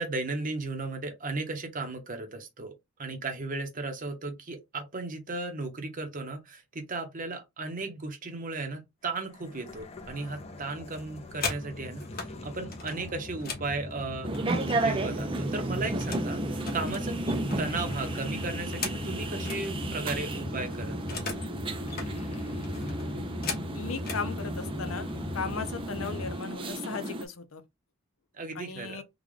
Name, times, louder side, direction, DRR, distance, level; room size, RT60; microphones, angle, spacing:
voice 1, 0.0-2.7 3.0-14.3 14.7-17.2 17.6-21.2 28.4-29.0, right 3 dB, 40° right, 0.9 m, -35 dB
sound 1, 9.2-26.4, left 1 dB, 30° left, 0.6 m, -39 dB
sound 2, 11.0-12.3 12.7-15.0 15.3-16.3 16.6-19.6 20.0-20.1 20.3-21.5 21.8-22.1 22.6-24.3 25.1-25.3 25.6-25.9 26.2-26.7, left 4 dB, 45° left, 1.3 m, -39 dB
sound 3, 14.2-27.3, right 2 dB, 25° right, 0.5 m, -33 dB
voice 2, 23.7-25.1 25.3-27.6 28.5-29.0, left 5 dB, 80° left, 0.7 m, -36 dB
3.8 x 2.4 x 3.2 m
head